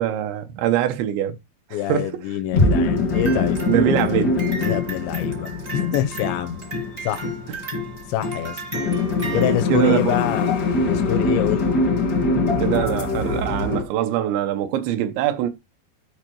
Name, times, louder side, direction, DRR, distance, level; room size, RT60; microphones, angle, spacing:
voice 1, 0.0-1.4 1.7-2.1 3.6-4.3 9.3-10.2 12.6-15.5, right 11 dB, 90° right, 3.2 m, -23 dB
voice 2, 1.7-3.6 4.6-6.6 7.0-7.3 8.1-8.6 9.3-10.5 10.8-11.8, left 11 dB, 85° left, 3.0 m, -26 dB
sound 1, 2.5-13.8, left 3 dB, 65° left, 1.0 m, -23 dB
sound 2, 2.6-6.5 6.8-6.9, left 1 dB, 45° left, 0.5 m, -27 dB
sound 3, 3.1-9.5, right 4 dB, 45° right, 0.7 m, -36 dB
12.0 x 4.5 x 4.5 m
omnidirectional pair, 5.0 m